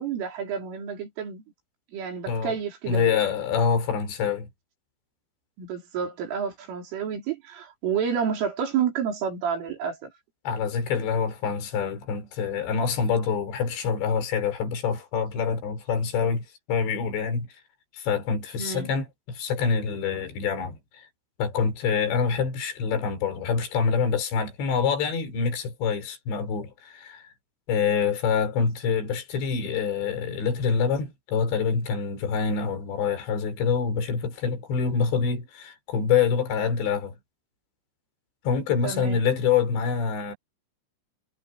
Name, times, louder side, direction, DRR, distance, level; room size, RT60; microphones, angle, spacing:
voice 1, 0.0-1.4 1.9-3.1 5.6-10.1 18.6-18.9 38.8-39.2, right 7 dB, 75° right, 7.0 m, -29 dB
voice 2, 2.9-4.5 10.4-17.5 17.9-21.0 21.4-27.2 27.7-37.1 38.4-40.4, left 6 dB, 60° left, 6.7 m, -26 dB
omnidirectional pair, 5.8 m